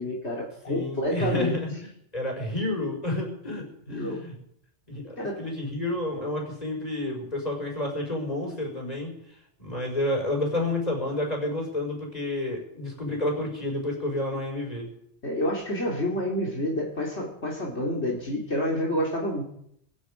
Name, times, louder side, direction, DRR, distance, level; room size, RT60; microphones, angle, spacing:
voice 1, 0.0-1.6 3.9-4.2 5.2-5.4 15.2-19.4, left 1 dB, 75° left, -2 dB, 3.2 m, -28 dB
voice 2, 0.7-1.8 2.1-4.4 4.9-9.1 9.6-14.9, left 1 dB, 35° left, 0 dB, 5.3 m, -30 dB
25.5 x 10.0 x 5.2 m, 0.72 s
omnidirectional pair, 1.2 m